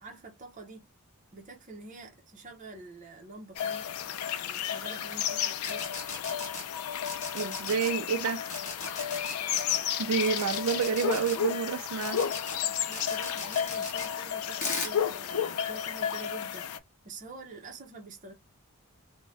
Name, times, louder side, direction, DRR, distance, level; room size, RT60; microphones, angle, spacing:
voice 1, 0.0-0.9 1.3-3.9 4.2-5.8 12.9-16.7 17.0-18.3, right 3 dB, 35° right, 0.7 m, -47 dB
sound 1, 3.6-16.8, left 9 dB, 75° left, 0.3 m, -32 dB
sound 2, 5.6-6.6 7.1-7.9 8.5-9.8 10.2-11.4 12.0-12.6 12.9-14.1 14.6-14.9, left 4 dB, 35° left, 0.9 m, -37 dB
voice 2, 7.3-8.4 10.0-12.2, right 6 dB, 85° right, 0.4 m, -29 dB
2.5 x 2.1 x 3.3 m
head